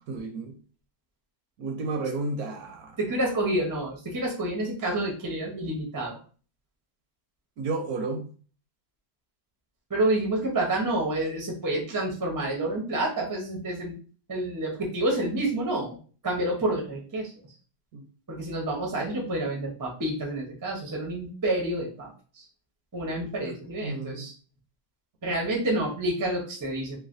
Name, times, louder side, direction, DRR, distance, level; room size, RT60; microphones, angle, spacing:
voice 1, 0.1-0.6 1.6-3.0 7.6-8.3 17.9-18.1 23.4-23.5 23.8-24.3, right 3 dB, 70° right, 1.0 m, -32 dB
voice 2, 3.0-6.2 9.9-14.0 14.3-16.0 16.2-17.3 18.3-22.5 22.9-24.3 25.2-27.0, right 1 dB, 25° right, 0.4 m, -28 dB
3.1 x 2.3 x 2.5 m
omnidirectional pair, 1.8 m